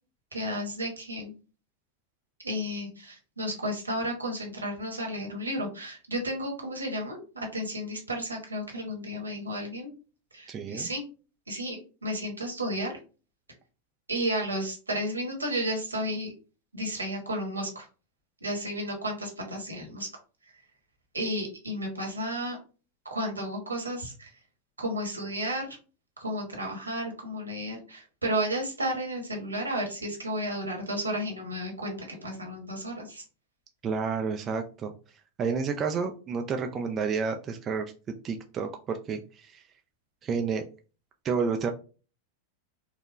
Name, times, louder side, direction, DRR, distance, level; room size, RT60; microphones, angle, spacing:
voice 1, 0.3-1.3 2.4-9.9 10.3-11.0 11.5-13.0 14.1-16.3 16.7-17.9 18.4-20.1 21.1-22.6 23.1-24.3 24.8-25.8 26.2-33.2, equal, 80° right, 1 dB, 1.2 m, -32 dB
voice 2, 10.5-10.9 33.8-34.9 35.4-37.9 38.2-39.6 40.2-40.6 41.2-41.7, right 5 dB, 25° right, 4 dB, 0.4 m, -30 dB
4.2 x 2.3 x 3.0 m, 0.35 s
figure-of-eight pair, 90°, 0 cm